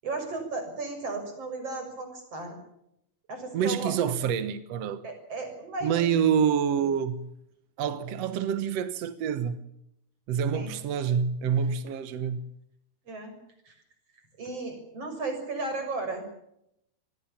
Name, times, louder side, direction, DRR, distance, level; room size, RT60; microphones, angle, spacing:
voice 1, 0.0-2.6 3.3-3.9 5.0-6.1 10.5-10.7 13.1-13.3 13.7-13.8 14.4-16.2, right 3 dB, 40° right, 7.5 m, -34 dB
voice 2, 3.5-5.0 5.8-7.3 7.8-9.6 10.3-12.5, right 7 dB, 65° right, 1.7 m, -27 dB
27.0 x 21.5 x 7.4 m
omnidirectional pair, 4.3 m